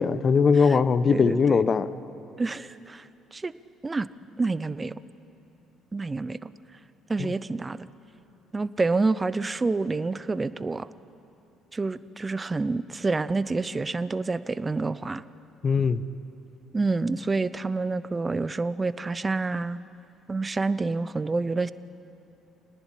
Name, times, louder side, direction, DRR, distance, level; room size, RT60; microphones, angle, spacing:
voice 1, 0.0-1.9 15.6-16.0, left 5 dB, 40° left, 15 dB, 0.9 m, -20 dB
voice 2, 1.1-1.6 2.4-3.5 3.8-4.1 4.4-4.9 5.9-6.5 7.1-7.9 8.5-10.9 11.7-15.2 16.7-19.8 20.3-21.7, right 3 dB, 25° right, 16 dB, 0.8 m, -28 dB
26.0 x 19.0 x 10.0 m, 2.8 s
figure-of-eight pair, 50°, 0 cm